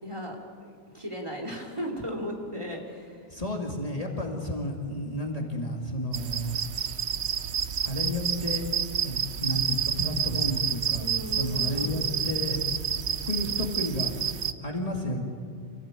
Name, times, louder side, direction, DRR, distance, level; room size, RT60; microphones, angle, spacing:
voice 1, 0.0-3.3 11.0-12.0, equal, 25° right, 1 dB, 3.4 m, -36 dB
voice 2, 3.3-7.0 7.8-8.6 9.0-12.6 13.3-14.1 14.6-15.2, left 1 dB, 30° left, 0 dB, 2.4 m, -32 dB
sound 1, 6.1-14.5, right 8 dB, 70° right, 1.1 m, -29 dB
27.0 x 16.5 x 9.1 m, 2.3 s
omnidirectional pair, 1.2 m